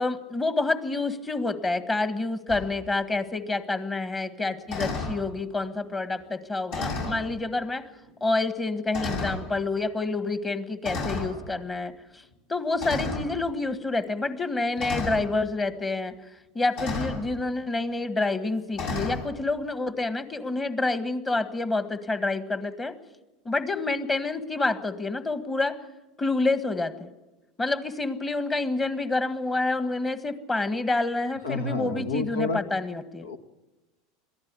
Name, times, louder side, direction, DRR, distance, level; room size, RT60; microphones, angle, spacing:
voice 1, 0.0-7.8 8.2-11.9 12.5-16.1 16.5-22.9 23.4-25.8 26.2-27.1 27.6-33.3, left 3 dB, 20° left, 11 dB, 1.6 m, -28 dB
sound 1, 2.5-2.7 4.7-5.2 6.7-7.2 8.1-8.2 8.9-9.4 10.8-11.3 12.8-13.3 14.8-15.3 16.8-17.2 18.7-19.2, left 3 dB, 60° left, 7.2 m, -31 dB
voice 2, 31.4-32.6 33.2-33.4, left 3 dB, 85° left, 11 dB, 1.2 m, -29 dB
22.0 x 14.5 x 8.3 m, 1.1 s
hypercardioid pair, 85°, 0 cm